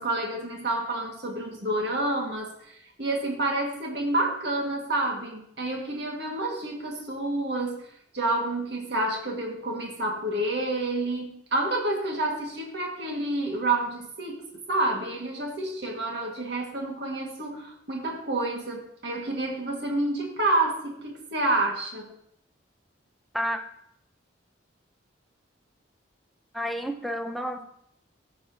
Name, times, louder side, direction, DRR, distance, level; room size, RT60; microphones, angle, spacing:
voice 1, 0.0-7.9 8.1-22.2, right 2 dB, 60° right, 0 dB, 1.8 m, -29 dB
voice 2, 26.5-27.6, equal, ahead, 4 dB, 0.6 m, -30 dB
14.5 x 7.1 x 2.8 m, 0.71 s
head